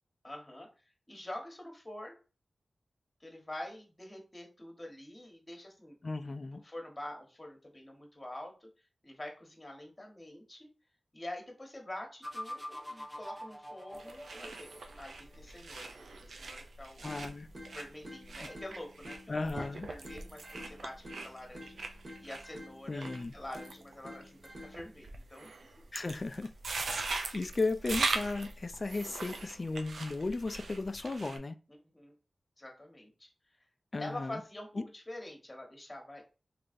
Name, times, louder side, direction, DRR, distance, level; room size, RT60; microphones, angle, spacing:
voice 1, 0.2-0.7 1.1-2.2 3.2-6.0 6.5-8.7 9.0-10.7 11.1-14.7 15.0-17.1 17.6-19.2 19.4-21.8 22.2-23.1 23.3-25.5 31.9-32.1 32.6-33.3 34.0-36.2, left 1 dB, 20° left, 1.1 m, -46 dB
voice 2, 6.0-6.6 17.0-17.5 18.4-18.5 19.3-19.9 22.9-23.3 25.9-26.5 27.3-31.6 33.9-34.4 34.8-34.9, left 3 dB, 45° left, 0.3 m, -35 dB
sound 1, 12.2-15.1, equal, ahead, 0.8 m, -44 dB
sound 2, 13.9-31.4, right 3 dB, 90° right, 0.4 m, -41 dB
sound 3, 17.0-25.0, left 1 dB, 50° right, 1.5 m, -51 dB
3.2 x 3.1 x 2.6 m
wide cardioid pair, 65°, 0 cm